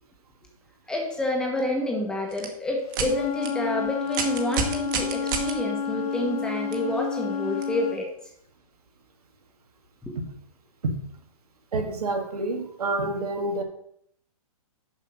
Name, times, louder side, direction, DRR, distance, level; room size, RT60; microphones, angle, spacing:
voice 1, 0.9-8.1 10.1-10.2, left 1 dB, 5° left, 0 dB, 1.1 m, -29 dB
sound 1, 2.3-2.5 2.9-3.1 3.4-3.5 4.1-5.5 6.7-6.8 7.6-7.7, right 6 dB, 35° right, 1.4 m, -28 dB
Wind instrument woodwind instrument, 2.9-8.0, left 6 dB, 80° left, 1.7 m, -30 dB
voice 2, 11.7-13.6, right 2 dB, 85° right, 4 dB, 1.8 m, -28 dB
7.1 x 5.5 x 6.1 m, 0.69 s
hypercardioid pair, 160°, 19 cm